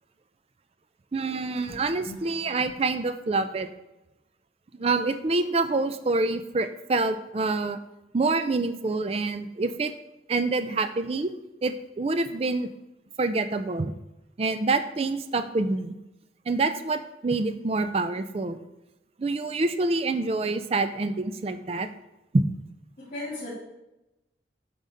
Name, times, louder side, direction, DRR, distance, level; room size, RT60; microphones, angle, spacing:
voice 1, 1.1-3.7 4.7-7.8 8.1-9.9 10.3-11.3 11.6-12.7 13.2-13.9 14.4-15.9 16.5-18.6 19.2-21.9 22.3-22.4, right 3 dB, 35° right, 10 dB, 0.4 m, -26 dB
voice 2, 23.0-23.5, left 2 dB, 50° left, -9 dB, 2.6 m, -37 dB
9.1 x 3.8 x 3.8 m, 0.93 s
head